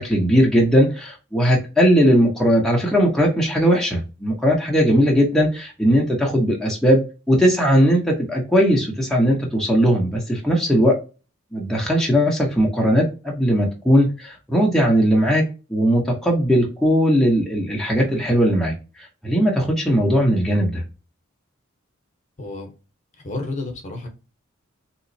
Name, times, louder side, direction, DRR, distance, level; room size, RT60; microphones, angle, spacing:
voice 1, 0.0-7.0 7.3-11.0 11.5-15.4 15.7-20.8, equal, ahead, 0.7 m, -18 dB
voice 2, 22.4-22.7 23.2-24.1, left 2 dB, 35° left, 0.9 m, -30 dB
3.6 x 2.9 x 2.6 m
head